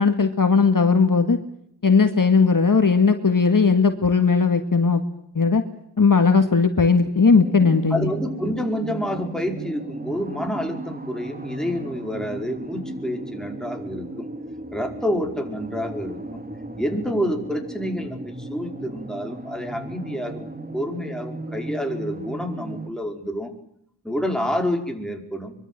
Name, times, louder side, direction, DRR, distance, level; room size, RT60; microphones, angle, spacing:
voice 1, 0.0-1.4 1.8-5.0 5.4-5.6 6.0-8.1, left 4 dB, 50° left, 7 dB, 2.1 m, -18 dB
sound 1, 7.3-22.9, right 1 dB, 20° right, 2.7 m, -35 dB
voice 2, 7.9-14.3 14.7-16.4 16.8-23.5 24.0-25.5, equal, ahead, 3 dB, 5.0 m, -28 dB
24.5 x 23.0 x 7.7 m, 0.72 s
wide cardioid pair, 80°, 41 cm